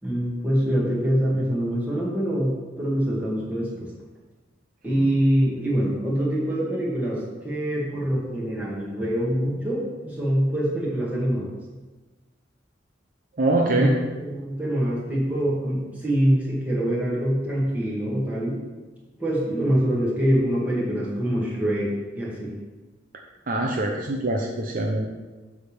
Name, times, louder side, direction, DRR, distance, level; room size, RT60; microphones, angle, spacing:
voice 1, 0.0-3.9 4.8-11.5 13.7-18.6 19.2-21.9 22.2-22.5, equal, 10° right, -6 dB, 2.1 m, -24 dB
voice 2, 13.4-13.9 23.5-25.1, right 2 dB, 45° right, 0 dB, 0.7 m, -23 dB
8.2 x 3.6 x 6.7 m, 1.2 s
head